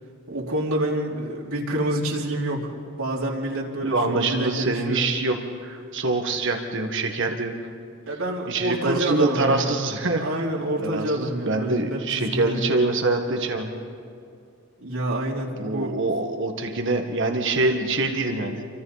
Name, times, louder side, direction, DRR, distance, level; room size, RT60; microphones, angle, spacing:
voice 1, 0.3-2.7 3.0-5.1 8.1-9.8 10.1-12.6 14.8-16.0, right 1 dB, 85° right, -2 dB, 3.1 m, -27 dB
voice 2, 3.8-7.5 8.5-10.2 10.8-13.7 15.6-18.7, right 2 dB, 60° right, 4 dB, 1.6 m, -25 dB
29.5 x 24.5 x 4.2 m, 2.3 s
head